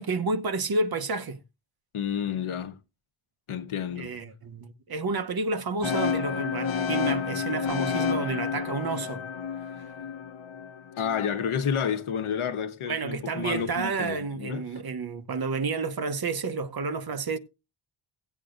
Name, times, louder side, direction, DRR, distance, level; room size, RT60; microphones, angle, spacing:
voice 1, 0.0-1.4 4.0-9.2 12.9-17.4, right 4 dB, 50° right, 0.9 m, -30 dB
voice 2, 1.9-2.8 3.5-4.1 11.0-14.6, left 7 dB, 90° left, 1.0 m, -30 dB
sound 1, 5.8-11.8, left 7 dB, 65° left, 1.4 m, -30 dB
17.0 x 8.3 x 2.5 m
wide cardioid pair, 170°, 48 cm